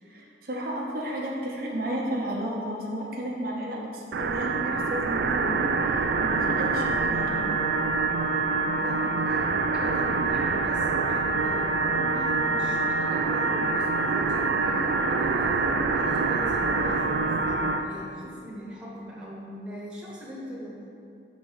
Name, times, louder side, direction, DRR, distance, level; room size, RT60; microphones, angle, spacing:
voice 1, 0.0-7.6, right 1 dB, 55° right, -2 dB, 0.9 m, -33 dB
sound 1, 4.1-17.8, right 3 dB, 70° right, 0.4 m, -25 dB
voice 2, 8.5-9.5 9.7-20.8, equal, 5° right, -7 dB, 1.1 m, -40 dB
6.0 x 4.0 x 5.6 m, 2.5 s
head